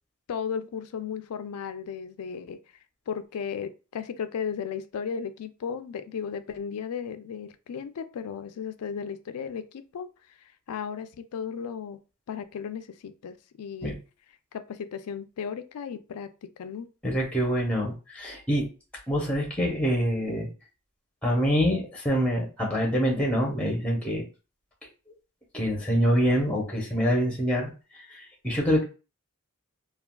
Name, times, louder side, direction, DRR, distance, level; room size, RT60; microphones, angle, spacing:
voice 1, 0.3-2.6 3.1-10.1 10.4-12.0 12.3-13.9 14.5-16.9, left 7 dB, 80° left, 11 dB, 0.4 m, -35 dB
voice 2, 17.0-18.7 19.1-20.5 21.2-24.2 25.5-27.7 28.1-28.8, equal, 5° left, -1 dB, 0.7 m, -25 dB
3.3 x 2.3 x 2.2 m, 0.32 s
head